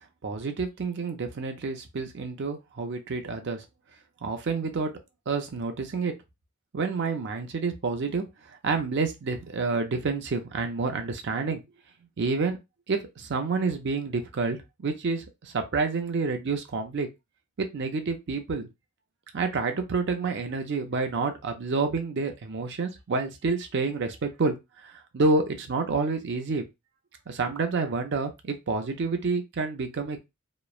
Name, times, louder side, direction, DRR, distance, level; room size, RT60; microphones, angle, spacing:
voice 1, 0.2-3.6 4.2-4.9 5.3-6.1 6.7-11.6 12.2-12.6 12.9-17.1 17.6-18.7 19.3-24.6 24.8-26.7 27.3-30.2, right 4 dB, 55° right, 6 dB, 0.5 m, -29 dB
3.0 x 2.1 x 2.3 m, 0.22 s
head